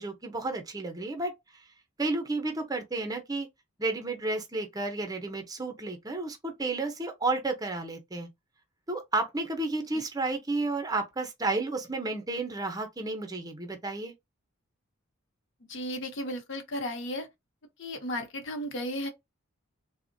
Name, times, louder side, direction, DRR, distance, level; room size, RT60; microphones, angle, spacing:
voice 1, 0.0-1.3 2.0-3.5 3.8-8.3 8.9-14.1, right 2 dB, 15° right, 0.6 m, -32 dB
voice 2, 15.7-17.3 17.8-19.1, equal, 55° left, 0.7 m, -34 dB
3.4 x 2.1 x 2.6 m
head